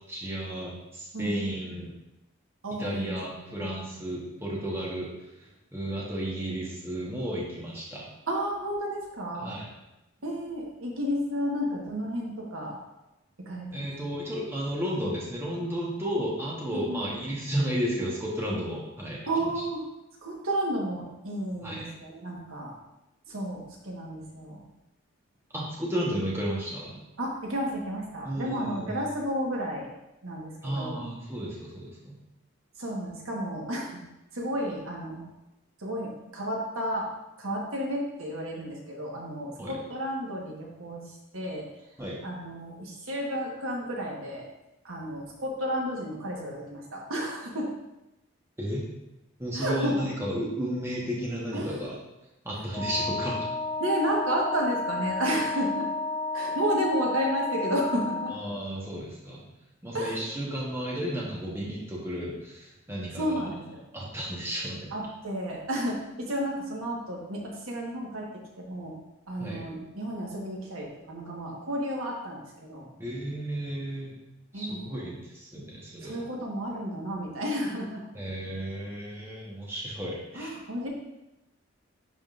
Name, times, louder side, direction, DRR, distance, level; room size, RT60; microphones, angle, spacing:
voice 1, 0.1-1.9 2.8-5.1 5.4-8.1 9.4-9.7 13.7-19.2 21.6-21.9 25.5-27.0 28.2-29.0 30.6-32.2 39.6-39.8 42.0-42.2 48.6-48.9 49.4-52.0 52.4-53.4 58.3-59.4 59.8-63.5 63.9-64.9 69.4-69.7 73.0-74.2 74.5-76.3 78.1-80.5, equal, 10° right, -5 dB, 1.0 m, -33 dB
voice 2, 1.1-1.8 2.6-3.7 8.3-9.6 10.2-12.8 13.4-13.8 16.7-17.1 19.3-19.8 20.2-22.7 23.3-24.6 27.2-29.9 30.2-31.0 32.8-34.0 34.3-35.3 35.8-37.1 37.4-41.7 42.2-44.4 44.8-47.7 49.5-50.1 51.5-51.8 53.8-55.9 56.3-58.3 59.9-60.3 63.1-63.8 64.9-68.3 68.6-68.9 69.3-72.9 74.5-74.8 76.0-78.0 80.3-80.9, equal, 85° right, -2 dB, 1.3 m, -32 dB
Wind instrument woodwind instrument, 52.7-58.4, left 3 dB, 20° left, 0.8 m, -32 dB
10.5 x 3.7 x 2.5 m, 0.93 s
head